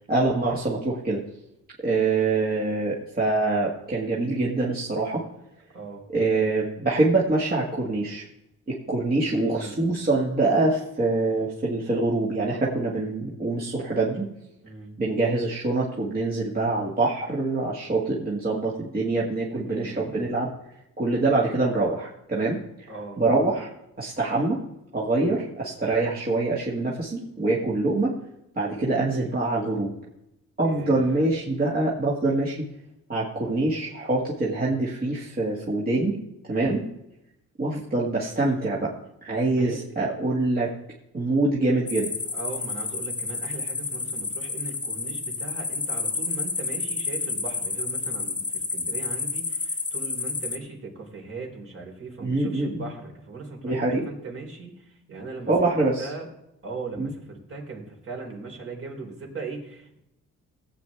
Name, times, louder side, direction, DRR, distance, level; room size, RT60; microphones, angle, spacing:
voice 1, 0.1-1.2 1.8-5.2 6.1-8.2 8.7-14.3 15.0-20.5 21.0-22.6 23.2-23.7 24.0-24.6 24.9-28.2 28.6-29.9 30.6-32.7 33.1-36.2 36.5-36.8 37.6-38.9 39.2-40.7 41.1-42.1 52.2-52.9 53.6-54.1 55.5-56.1 57.0-57.1, right 2 dB, 30° right, -5 dB, 2.1 m, -25 dB
voice 2, 9.3-9.8 14.6-14.9 19.5-20.3 22.9-23.2 25.2-25.3 30.6-31.3 36.5-36.8 39.6-39.8 42.3-55.5 56.0-56.3 56.6-60.0, right 3 dB, 45° right, 1 dB, 3.6 m, -39 dB
sound 1, 41.9-50.6, left 4 dB, 25° left, 1.0 m, -30 dB
16.5 x 8.3 x 3.6 m, 0.85 s
cardioid pair, 90°, 30 cm